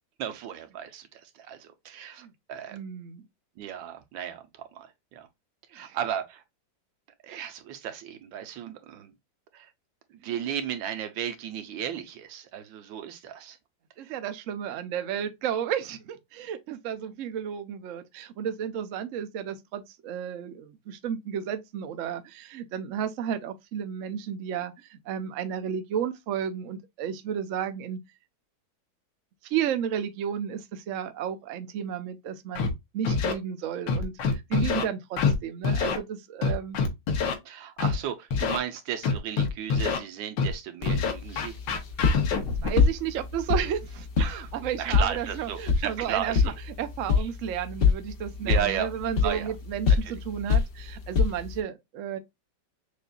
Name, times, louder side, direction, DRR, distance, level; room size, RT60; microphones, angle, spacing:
voice 1, 0.2-2.8 3.6-5.3 5.7-6.4 7.2-9.1 9.5-9.7 10.1-13.6 14.0-14.1 34.6-34.9 37.4-41.6 44.2-44.5 44.8-46.5 47.2-47.3 48.4-48.9 49.2-49.5 50.0-50.2, right 9 dB, 90° right, 1.5 m, -35 dB
voice 2, 2.7-3.2 5.8-6.0 7.3-7.4 10.2-10.3 14.0-28.0 29.4-36.8 42.6-52.2, right 8 dB, 70° right, 0.7 m, -33 dB
Scratching (performance technique), 32.6-32.7 33.0-33.3 33.9-34.8 35.2-35.3 35.6-36.0 36.4-37.3 37.8-37.9 38.3-38.6 39.0-40.0 40.4-40.5 40.8-42.7, left 5 dB, 75° left, 1.6 m, -25 dB
sound 1, 40.8-51.6, left 5 dB, 60° left, 0.6 m, -27 dB
6.5 x 2.4 x 2.3 m
omnidirectional pair, 2.0 m